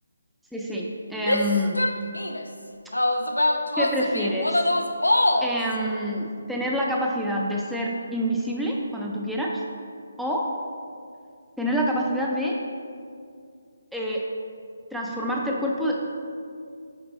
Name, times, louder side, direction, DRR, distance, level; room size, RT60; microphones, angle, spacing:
voice 1, 0.5-1.8 3.8-4.6 5.4-9.6 10.2-10.5 11.6-12.6 13.9-14.3 14.9-16.1, equal, ahead, -3 dB, 0.5 m, -27 dB
Female speech woman speaking / Yell, 1.2-2.4 2.9-5.6, left 1 dB, 90° left, 0.4 m, -23 dB
7.0 x 5.1 x 3.0 m, 2.3 s
figure-of-eight pair, 150°, 0 cm